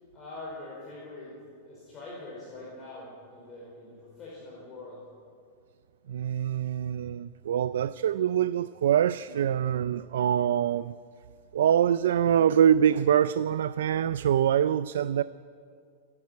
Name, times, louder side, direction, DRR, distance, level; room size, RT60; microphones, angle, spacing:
voice 1, 0.1-1.3 1.7-5.0, left 2 dB, 15° left, 4.9 m, -43 dB
voice 2, 6.1-11.0 11.5-15.2, right 9 dB, 90° right, 0.4 m, -24 dB
28.5 x 11.0 x 9.6 m
supercardioid pair, 175°, 0 cm